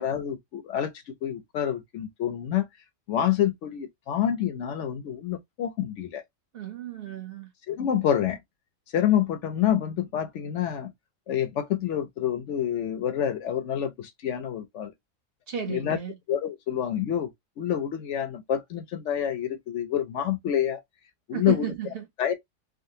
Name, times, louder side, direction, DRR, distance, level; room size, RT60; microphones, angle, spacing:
voice 1, 0.0-2.7 3.1-6.2 7.7-8.4 8.9-10.9 11.3-14.9 15.7-16.0 16.3-17.3 17.6-20.8 21.3-21.7 22.2-22.3, left 10 dB, 70° left, 0.8 m, -27 dB
voice 2, 6.5-7.5 15.5-16.2 21.3-22.1, right 9 dB, 50° right, 0.9 m, -33 dB
3.6 x 2.1 x 2.7 m
omnidirectional pair, 1.4 m